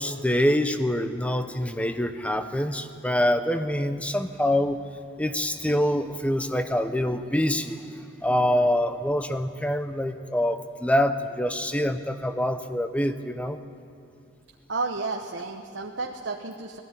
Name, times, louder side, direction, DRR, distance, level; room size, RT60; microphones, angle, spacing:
voice 1, 0.0-4.8 5.2-7.8 8.2-13.6, equal, 5° left, 9 dB, 0.7 m, -25 dB
voice 2, 14.7-16.8, right 3 dB, 75° right, 2 dB, 1.0 m, -32 dB
18.0 x 15.0 x 10.0 m, 2.4 s
head